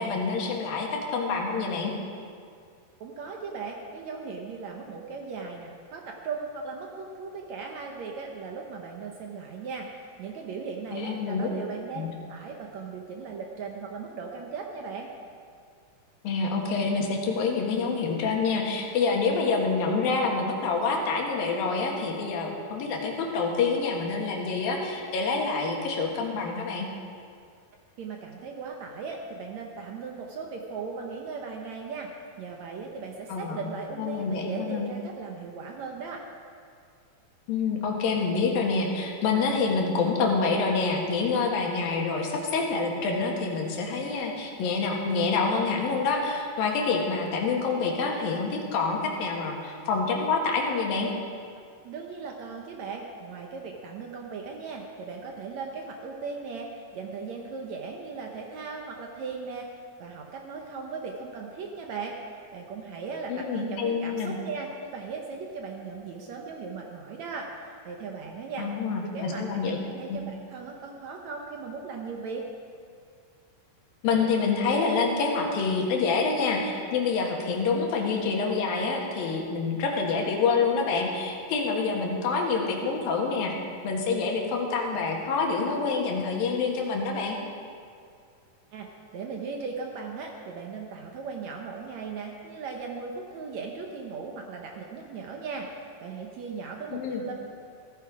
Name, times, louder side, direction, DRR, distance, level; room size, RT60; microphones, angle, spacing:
voice 1, 0.0-1.9 10.9-11.5 11.9-12.1 16.2-26.9 33.3-33.6 34.0-34.9 37.5-51.1 63.3-64.3 68.6-69.8 70.1-70.2 74.0-83.5 83.8-87.4 96.9-97.2, left 4 dB, 80° left, 1 dB, 3.4 m, -27 dB
voice 2, 3.0-9.9 10.2-15.1 28.0-32.1 32.4-36.3 51.8-59.7 60.0-68.7 69.0-72.5 88.7-97.3, right 4 dB, 65° right, 1 dB, 1.9 m, -38 dB
15.5 x 14.0 x 4.9 m, 2.3 s
omnidirectional pair, 4.1 m